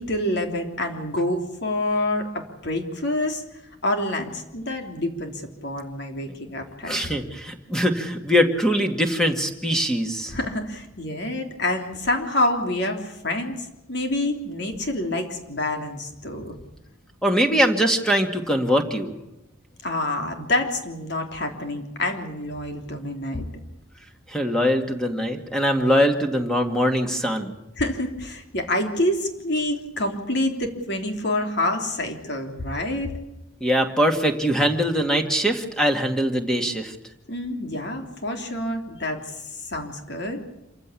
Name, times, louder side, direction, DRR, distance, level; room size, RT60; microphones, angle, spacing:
voice 1, 0.0-3.4 3.8-7.1 10.3-13.6 13.9-16.6 19.8-23.5 27.8-33.1 37.3-39.2 39.6-40.4, left 1 dB, 55° left, 4 dB, 3.4 m, -27 dB
voice 2, 6.8-10.3 17.2-19.1 24.3-27.5 33.6-36.9, equal, 5° left, 4 dB, 2.2 m, -22 dB
27.0 x 15.5 x 8.6 m, 0.94 s
head